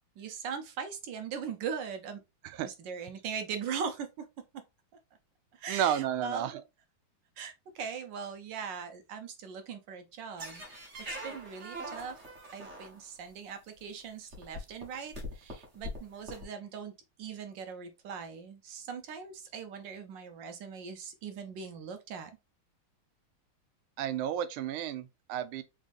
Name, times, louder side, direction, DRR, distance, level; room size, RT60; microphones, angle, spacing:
voice 1, 0.2-2.2 2.6-4.2 5.5-6.4 7.4-12.2 12.5-16.9 17.2-22.3, right 6 dB, 70° right, 1.2 m, -40 dB
voice 2, 5.7-6.6 24.0-25.6, right 10 dB, 85° right, 1.4 m, -32 dB
sound 1, 10.4-13.3 14.0-14.1 14.3-16.4, equal, 40° right, 1.4 m, -42 dB
4.0 x 3.8 x 2.5 m
omnidirectional pair, 2.3 m